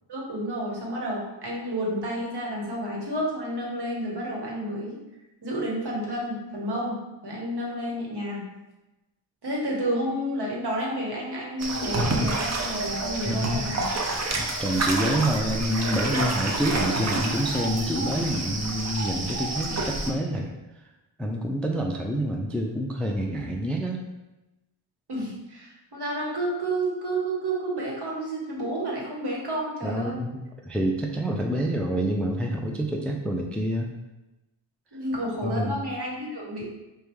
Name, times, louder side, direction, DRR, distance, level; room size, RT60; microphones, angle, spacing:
voice 1, 0.1-5.0 5.4-8.5 9.4-13.9 25.1-30.2 34.9-36.6, right 1 dB, 60° right, -3 dB, 1.2 m, -30 dB
sound 1, 11.6-20.1, right 2 dB, 35° right, 0.6 m, -28 dB
voice 2, 13.3-13.8 14.4-20.5 21.2-24.0 29.8-33.9 35.4-35.8, right 1 dB, 5° left, 1 dB, 0.3 m, -27 dB
5.0 x 2.2 x 3.1 m, 1.0 s
wide cardioid pair, 75°, 46 cm